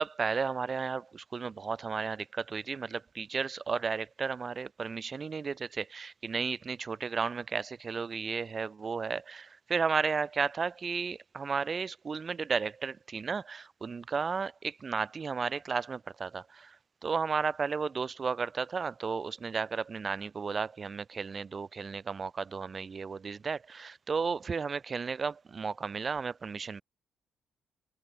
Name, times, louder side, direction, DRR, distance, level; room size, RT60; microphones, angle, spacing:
voice 1, 0.0-16.8 17.0-26.8, right 5 dB, 40° right, 2.7 m, -33 dB
cardioid pair, 90°, 0 cm